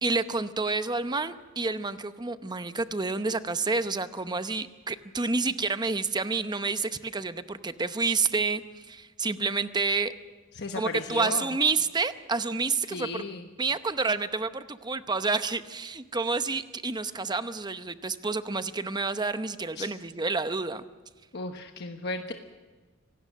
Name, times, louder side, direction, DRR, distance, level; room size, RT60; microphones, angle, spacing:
voice 1, 0.0-8.6 8.9-10.1 10.7-13.1 13.6-20.8, right 4 dB, 20° right, 11 dB, 0.8 m, -29 dB
voice 2, 10.5-11.6 12.9-13.5 19.7-19.9 21.3-22.3, left 3 dB, 60° left, 5 dB, 1.1 m, -35 dB
25.5 x 18.0 x 6.4 m, 1.3 s
head